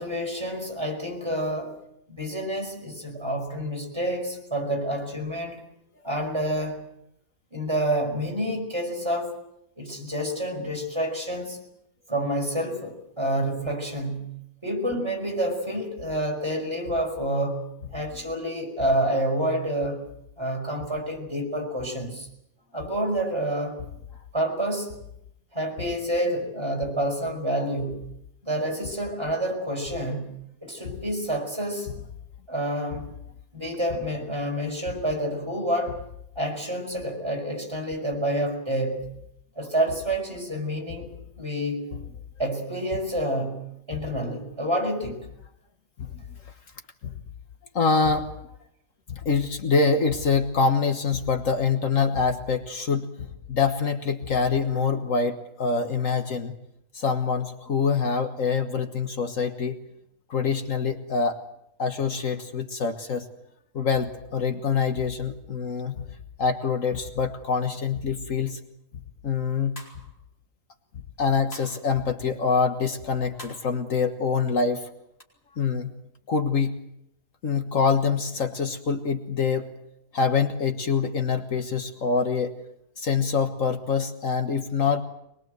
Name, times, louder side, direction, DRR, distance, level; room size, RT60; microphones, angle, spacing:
voice 1, 0.0-5.6 6.0-6.8 7.5-9.4 9.8-11.7 12.1-20.1 20.4-22.3 22.7-23.8 24.3-25.0 25.5-28.1 28.4-31.9 32.5-33.1 33.5-36.0 36.4-39.1 39.6-41.1 41.4-41.9 42.4-45.3, right 1 dB, 20° right, 1 dB, 5.4 m, -28 dB
voice 2, 47.8-48.3 49.1-56.5 56.9-59.8 60.3-61.4 61.8-63.3 63.8-66.0 66.4-68.6 69.2-69.8 71.2-74.9 75.6-75.9 76.3-76.8 77.4-79.7 80.1-82.5 83.0-85.0, left 5 dB, 65° left, 7 dB, 1.8 m, -25 dB
sound 1, 69.8-70.2 71.5-71.9 73.4-73.7 75.2-75.3, left 1 dB, 45° left, 4.6 m, -44 dB
23.5 x 22.0 x 7.9 m, 0.79 s
omnidirectional pair, 1.5 m